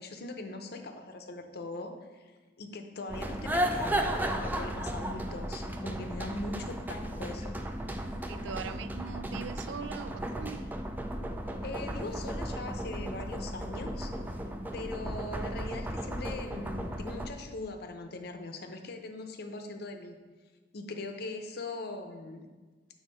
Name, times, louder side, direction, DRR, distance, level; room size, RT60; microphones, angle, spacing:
voice 1, 0.0-7.6 11.6-14.1 14.7-20.2 20.7-22.5, left 2 dB, 60° left, 6 dB, 0.6 m, -41 dB
sound 1, 3.1-17.3, right 1 dB, 10° right, 0.4 m, -35 dB
voice 2, 8.3-10.7, right 7 dB, 85° right, 12 dB, 0.3 m, -41 dB
7.2 x 3.5 x 5.4 m, 1.4 s
head